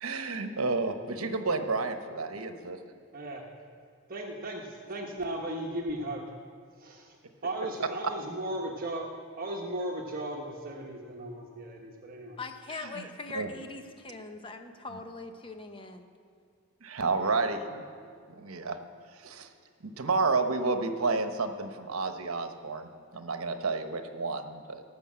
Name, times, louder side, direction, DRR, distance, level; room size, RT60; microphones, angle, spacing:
voice 1, 0.0-2.8 7.8-7.9 12.7-13.1 13.3-13.5 14.9-15.0 16.8-18.8 19.1-19.5 19.8-24.8, right 3 dB, 80° right, 1.0 m, -31 dB
voice 2, 4.1-6.2 6.8-7.2 7.4-9.1 9.4-12.4, right 1 dB, 40° right, 1.1 m, -36 dB
voice 3, 12.4-16.1, left 3 dB, 25° left, 0.8 m, -41 dB
18.5 x 6.4 x 7.6 m
head